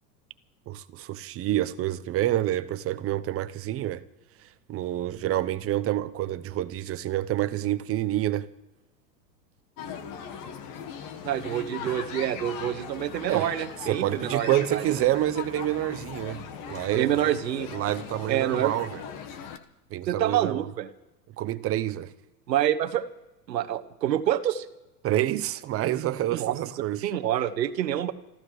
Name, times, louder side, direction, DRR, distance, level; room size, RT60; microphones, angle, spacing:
voice 1, 0.7-4.0 4.7-8.5 13.3-13.5 13.8-17.3 17.7-19.0 19.9-20.7 21.4-22.1 25.0-27.1, right 13 dB, 30° right, 0.8 m, -28 dB
sound 1, 9.8-19.6, left 7 dB, 40° left, 1.5 m, -39 dB
voice 2, 11.2-14.8 16.9-17.7 18.3-18.7 20.1-20.9 22.5-23.0 23.5-24.6 26.3-26.5 27.0-28.1, right 11 dB, 80° right, 1.2 m, -27 dB
27.5 x 14.0 x 3.2 m
hypercardioid pair, 105°, 49 cm